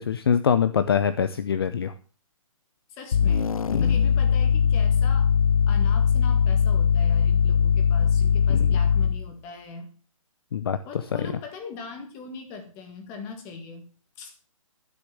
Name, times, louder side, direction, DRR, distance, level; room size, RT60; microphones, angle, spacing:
voice 1, 0.0-1.9 3.7-3.8 8.5-8.7 10.5-10.8, left 7 dB, 45° left, 12 dB, 0.7 m, -24 dB
voice 2, 2.9-3.6 3.8-5.3 5.7-9.9 10.8-13.9 14.2-14.3, left 4 dB, 15° left, 6 dB, 1.8 m, -40 dB
sound 1, 3.1-9.3, left 7 dB, 90° left, 0.7 m, -20 dB
12.0 x 6.8 x 7.5 m, 0.39 s
hypercardioid pair, 170°, 18 cm